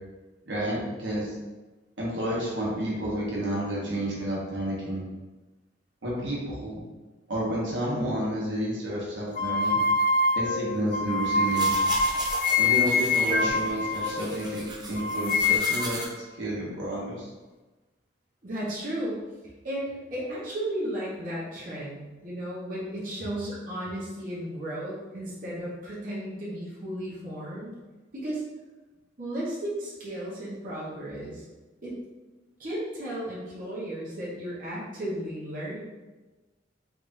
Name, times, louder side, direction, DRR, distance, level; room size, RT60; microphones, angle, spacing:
voice 1, 0.4-1.3 2.0-5.1 6.0-6.8 7.3-9.8 10.3-11.8 12.6-17.3, right 1 dB, 85° right, -5 dB, 1.1 m, -30 dB
sound 1, 9.4-14.6 15.0-16.0, left 3 dB, 50° left, 0.3 m, -25 dB
sound 2, 11.4-16.0, right 2 dB, 25° right, 0.5 m, -37 dB
voice 2, 18.4-19.2 19.6-27.7 28.1-28.4 29.2-31.4 31.8-31.9 32.6-35.8, right 1 dB, 45° right, -7 dB, 1.0 m, -34 dB
3.6 x 3.4 x 2.6 m, 1.2 s
head